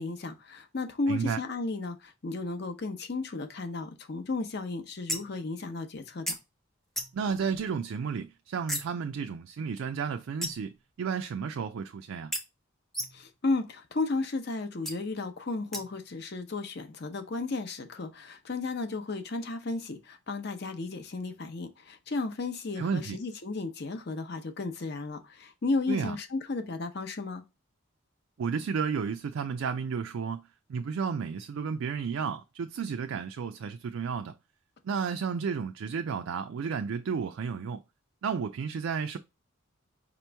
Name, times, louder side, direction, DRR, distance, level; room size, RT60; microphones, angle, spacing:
voice 1, 0.0-6.4 13.1-27.4, left 3 dB, 50° left, 0.7 m, -34 dB
voice 2, 1.1-1.4 7.1-12.3 22.8-23.2 25.9-26.2 28.4-34.3 34.8-37.8 38.2-39.2, right 6 dB, 70° right, 0.3 m, -32 dB
sound 1, 5.1-5.4 6.3-6.4 6.9-7.3 8.7-8.9 10.4-10.8 12.3-12.4 12.9-13.3 14.8-14.9 15.7-16.1, equal, ahead, 0.6 m, -34 dB
5.0 x 3.0 x 3.3 m
head